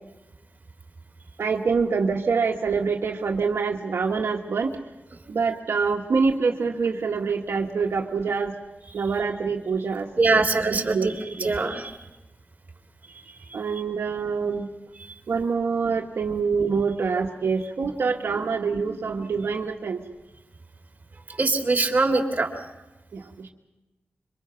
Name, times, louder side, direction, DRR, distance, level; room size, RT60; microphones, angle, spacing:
voice 1, 1.4-4.8 5.3-8.5 8.9-10.4 10.7-11.1 11.4-11.5 13.5-14.7 15.3-20.0 23.1-23.5, right 5 dB, 85° right, 2 dB, 1.5 m, -25 dB
voice 2, 10.2-12.0 13.1-13.8 15.0-15.1 21.3-22.5, right 3 dB, 40° right, 2 dB, 3.3 m, -24 dB
26.0 x 24.5 x 5.8 m, 1.1 s
wide cardioid pair, 95°, 4 cm